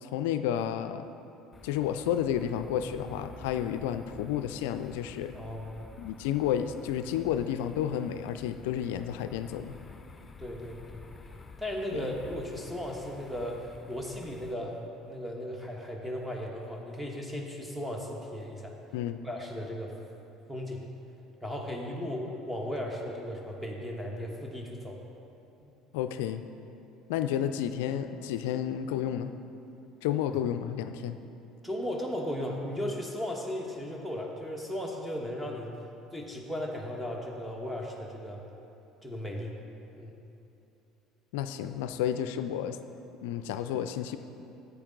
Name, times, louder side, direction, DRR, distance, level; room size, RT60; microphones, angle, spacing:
voice 1, 0.0-1.1 1.6-5.3 6.0-9.8 11.9-12.1 18.9-19.2 25.9-26.5 27.1-29.3 30.0-31.2 41.3-42.8 43.2-44.2, left 10 dB, 75° left, 10 dB, 0.3 m, -31 dB
sound 1, 1.5-14.5, left 4 dB, 25° left, 0.7 m, -50 dB
voice 2, 5.3-5.7 10.4-11.0 11.6-14.7 15.0-18.7 19.2-19.9 20.5-20.8 21.4-25.0 25.6-25.7 31.6-35.7 36.1-38.4 39.0-39.6 40.0-40.2, equal, 10° right, 0 dB, 1.3 m, -36 dB
10.0 x 8.2 x 3.8 m, 2.8 s
hypercardioid pair, 70°, 0 cm